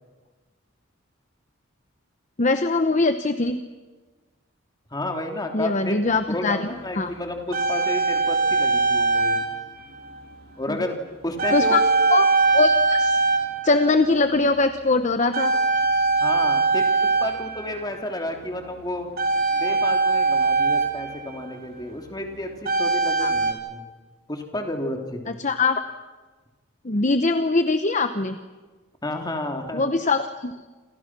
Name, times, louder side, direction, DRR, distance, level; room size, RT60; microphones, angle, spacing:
voice 1, 2.4-3.6 5.5-6.7 6.9-7.1 10.7-10.8 11.5-11.8 12.1-12.2 12.5-13.2 13.6-15.5 23.2-23.3 25.4-25.8 26.8-28.4 29.7-30.5, left 3 dB, 35° left, 9 dB, 0.9 m, -22 dB
voice 2, 4.9-6.0 6.3-9.4 10.6-10.9 11.2-11.8 16.2-16.9 17.2-19.1 19.5-23.9 24.3-25.4 29.0-29.8, left 1 dB, 20° left, 3 dB, 3.0 m, -31 dB
sound 1, 6.1-6.2 7.1-9.7 9.9-10.2 11.4-14.1 14.4-14.8 15.3-18.0 19.2-21.5 22.7-23.5, right 3 dB, 45° right, 3.2 m, -22 dB
28.5 x 27.0 x 6.1 m, 1.3 s
head